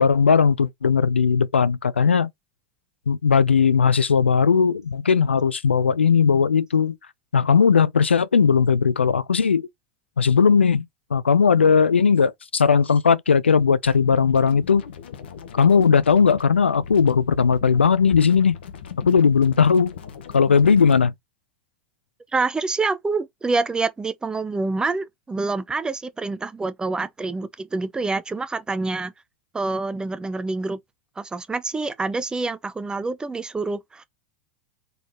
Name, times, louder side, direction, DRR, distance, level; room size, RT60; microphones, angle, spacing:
voice 1, 0.0-2.3 3.1-7.0 7.3-9.7 10.2-10.9 11.1-14.8 15.5-18.6 19.1-19.9 20.3-21.1, left 6 dB, 90° left, 0.4 m, -18 dB
sound 1, 13.8-21.0, left 7 dB, 75° left, 1.1 m, -39 dB
voice 2, 22.3-29.1 29.5-30.8 31.2-34.0, right 3 dB, 15° right, 0.6 m, -27 dB
4.0 x 3.9 x 2.9 m
hypercardioid pair, 90°, 6 cm